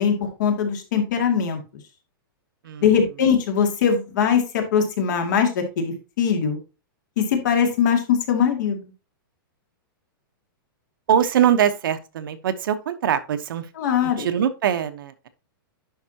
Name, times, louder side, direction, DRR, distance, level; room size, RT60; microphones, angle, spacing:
voice 1, 0.0-1.6 2.8-6.6 7.2-8.8 13.8-14.3, left 7 dB, 55° left, 2.2 m, -21 dB
voice 2, 11.1-13.7 14.0-15.3, right 9 dB, 65° right, 1.0 m, -22 dB
10.0 x 5.8 x 2.8 m
hypercardioid pair, 165°, 12 cm